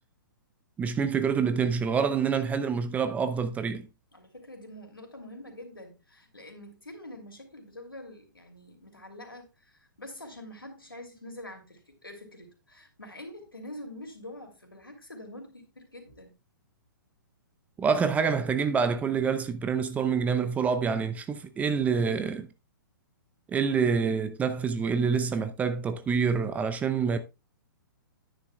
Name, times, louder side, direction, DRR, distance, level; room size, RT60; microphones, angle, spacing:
voice 1, 0.8-3.9 17.8-22.5 23.5-27.2, right 6 dB, 15° right, 0.6 m, -27 dB
voice 2, 4.1-16.3, left 1 dB, 85° left, 2.8 m, -45 dB
10.0 x 9.9 x 2.3 m
figure-of-eight pair, 115°, 11 cm